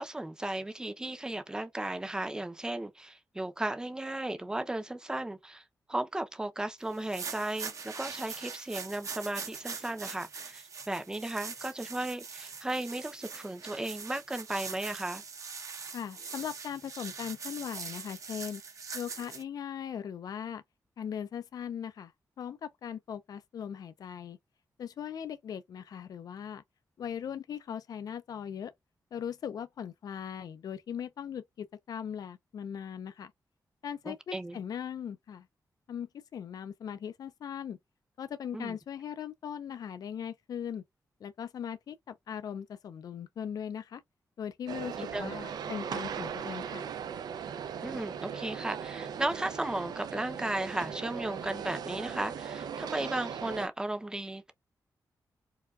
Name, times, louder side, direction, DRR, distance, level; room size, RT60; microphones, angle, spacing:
voice 1, 0.0-5.6 5.9-15.2 34.1-34.6 38.5-38.8 45.0-45.3 47.8-54.5, right 1 dB, 10° right, 0.5 m, -35 dB
sound 1, 6.9-19.4, right 5 dB, 50° right, 0.7 m, -42 dB
voice 2, 15.9-18.6 18.9-20.6 21.0-22.1 22.4-24.4 24.8-26.6 27.0-28.7 29.1-33.3 33.8-35.5 35.9-37.8 38.2-40.8 41.2-44.0 44.4-46.9, left 8 dB, 70° left, 0.4 m, -39 dB
sound 2, 44.7-53.7, right 7 dB, 80° right, 0.4 m, -38 dB
4.6 x 2.2 x 2.3 m
wide cardioid pair, 125°, 7 cm